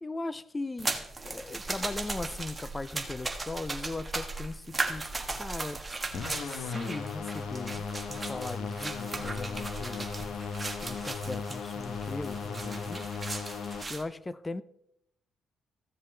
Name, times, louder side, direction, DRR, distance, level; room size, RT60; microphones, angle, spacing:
voice 1, 0.0-1.0 1.2-5.1 5.4-5.8 6.5-10.4 10.8-13.1 13.9-14.6, left 2 dB, 20° left, 0.5 m, -38 dB
sound 1, 0.8-14.0, right 3 dB, 20° right, 1.4 m, -37 dB
sound 2, 6.1-13.8, left 5 dB, 75° left, 1.1 m, -37 dB
15.0 x 7.2 x 3.3 m
cardioid pair, 90°, 0 cm